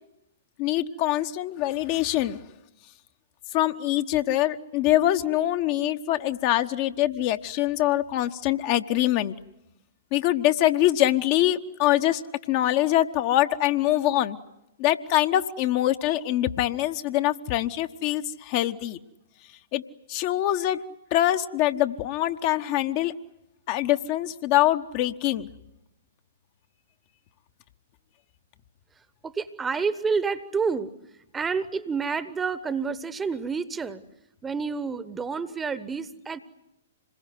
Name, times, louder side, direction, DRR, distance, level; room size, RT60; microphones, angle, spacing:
voice 1, 0.6-2.4 3.5-9.3 10.1-12.2 12.5-14.4 14.8-19.0 19.7-19.8 20.1-20.8 21.1-23.1 23.7-25.5, left 14 dB, 35° left, 8 dB, 1.1 m, -24 dB
voice 2, 29.2-30.9 31.3-34.0 34.4-36.4, right 5 dB, 10° right, 15 dB, 1.1 m, -29 dB
27.0 x 21.5 x 9.7 m, 0.92 s
figure-of-eight pair, 115°, 0 cm